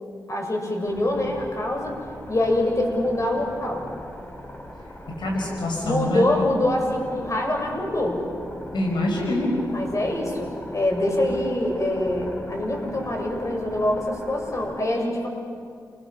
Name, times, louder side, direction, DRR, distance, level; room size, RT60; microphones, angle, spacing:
voice 1, 0.3-2.0 2.3-3.8 5.8-8.2 9.7-15.3, left 1 dB, 40° left, 1 dB, 7.4 m, -24 dB
sound 1, 0.8-14.7, left 1 dB, 25° left, 5.6 m, -40 dB
voice 2, 5.2-6.3 8.7-9.5, left 1 dB, 80° left, 0 dB, 5.2 m, -25 dB
29.0 x 24.0 x 7.4 m, 2.3 s
cardioid pair, 55°, 8 cm